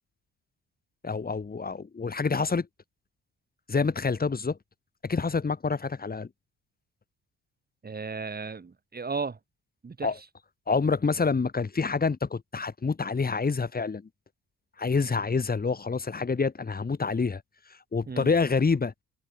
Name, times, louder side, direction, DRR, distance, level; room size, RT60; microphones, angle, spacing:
voice 1, 1.0-2.7 3.7-4.6 5.0-6.3 10.0-10.2 10.7-14.0 14.8-17.4 17.9-18.9, left 4 dB, 30° left, 3.7 m, -27 dB
voice 2, 7.8-9.4 9.8-10.1 18.1-18.3, right 4 dB, 30° right, 4.1 m, -34 dB
cardioid pair, 90°, 30 cm